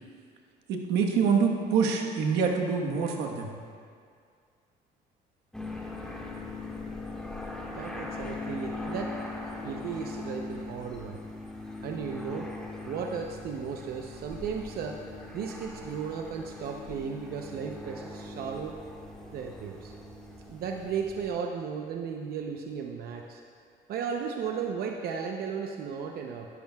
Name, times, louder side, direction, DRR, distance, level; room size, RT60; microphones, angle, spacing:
voice 1, 0.7-3.5, right 5 dB, 85° right, 1 dB, 1.3 m, -26 dB
sound 1, 5.5-21.3, left 2 dB, 5° left, 1.6 m, -40 dB
voice 2, 7.7-9.2 9.6-11.2 11.8-12.5 12.8-15.0 15.3-18.8 19.3-19.9 20.5-23.4 23.9-26.5, right 6 dB, 65° right, 2 dB, 0.7 m, -35 dB
15.0 x 13.0 x 2.4 m, 2.2 s
cardioid pair, 110°, 17 cm